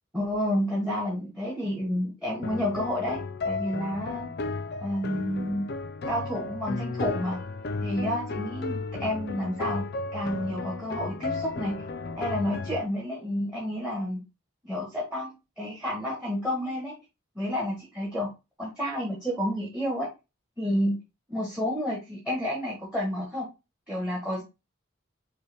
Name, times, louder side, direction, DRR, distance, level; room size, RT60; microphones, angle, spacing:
voice 1, 0.1-4.3 4.8-5.7 6.1-7.4 7.8-9.8 10.1-11.8 12.2-14.2 14.6-16.9 17.3-18.3 18.6-20.1 20.6-21.0 21.3-23.5 23.9-24.4, equal, 5° right, -3 dB, 1.1 m, -30 dB
sound 1, 2.4-12.9, left 3 dB, 55° left, 0.4 m, -34 dB
5.4 x 2.3 x 3.3 m, 0.26 s
head